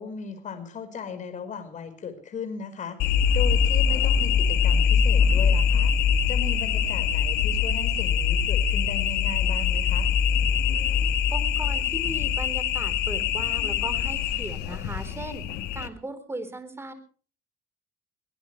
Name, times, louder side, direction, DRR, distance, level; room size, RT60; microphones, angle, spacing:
voice 1, 0.0-5.9 6.3-10.1, left 6 dB, 45° left, 8 dB, 5.0 m, -37 dB
sound 1, 3.0-15.9, left 7 dB, 75° left, 1.4 m, -23 dB
voice 2, 11.3-15.4 15.7-16.9, right 2 dB, 15° right, 10 dB, 4.1 m, -37 dB
23.0 x 18.5 x 3.3 m, 0.41 s
cardioid pair, 110°, 17 cm